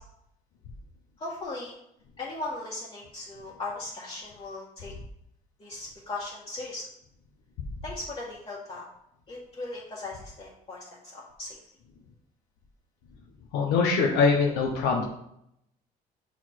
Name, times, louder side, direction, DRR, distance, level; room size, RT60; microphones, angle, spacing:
voice 1, 1.2-1.8 2.2-4.9 5.6-6.9 7.8-8.8 9.3-11.6, left 2 dB, 35° left, -7 dB, 1.6 m, -38 dB
voice 2, 13.5-15.1, left 4 dB, 85° left, 0 dB, 0.9 m, -23 dB
5.9 x 4.3 x 4.6 m, 0.76 s
cardioid pair, 110°, 17 cm